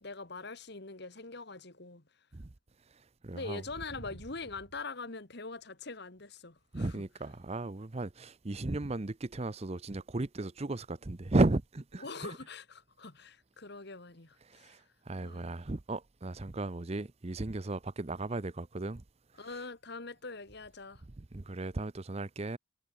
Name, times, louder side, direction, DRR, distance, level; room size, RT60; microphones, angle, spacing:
voice 1, 0.0-2.0 3.3-7.0 12.0-14.8 15.2-15.5 19.4-21.0, left 3 dB, 55° left, 2.0 m, -43 dB
voice 2, 3.2-3.6 6.7-12.4 14.5-14.8 15.1-19.0 21.2-22.6, right 2 dB, 30° right, 0.7 m, -34 dB
head